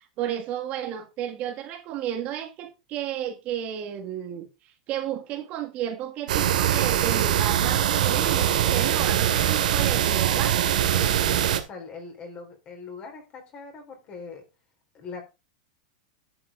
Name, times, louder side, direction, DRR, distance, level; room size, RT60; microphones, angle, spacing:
voice 1, 0.0-4.5 4.9-10.6, right 10 dB, 35° right, 1.7 m, -32 dB
sound 1, 6.3-11.6, right 11 dB, 85° right, 2.2 m, -22 dB
voice 2, 10.9-14.4 14.9-15.2, left 4 dB, 25° left, 4.0 m, -41 dB
11.0 x 7.9 x 3.6 m
supercardioid pair, 160°, 4 cm